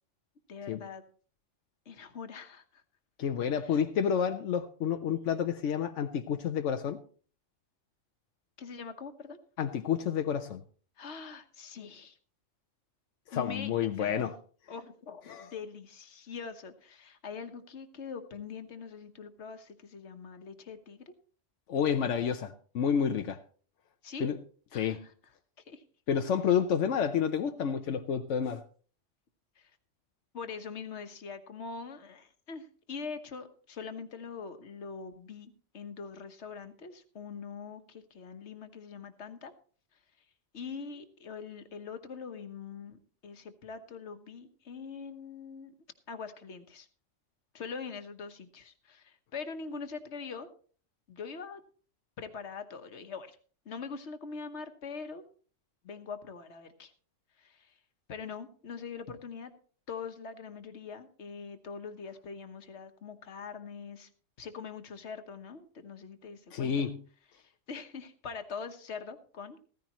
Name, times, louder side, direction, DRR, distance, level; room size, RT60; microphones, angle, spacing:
voice 1, 0.5-1.0 1.9-2.8 3.6-3.8 8.6-9.4 11.0-12.2 13.3-14.3 14.7-21.1 24.0-24.3 24.7-25.1 25.7-25.8 29.6-29.7 30.3-39.5 40.5-45.7 46.1-46.9 47.5-50.5 51.1-51.6 52.2-53.4 53.6-55.2 55.8-56.9 57.4-57.8 58.1-59.5 59.9-64.1 64.4-66.8 67.3-69.7, left 5 dB, 70° left, 1.4 m, -43 dB
voice 2, 3.2-7.0 9.6-10.6 13.3-14.3 15.3-15.5 21.7-23.4 24.2-24.4 24.7-25.0 26.1-28.6 66.5-67.0, left 7 dB, 90° left, 1.1 m, -29 dB
15.0 x 14.5 x 3.0 m
omnidirectional pair, 1.2 m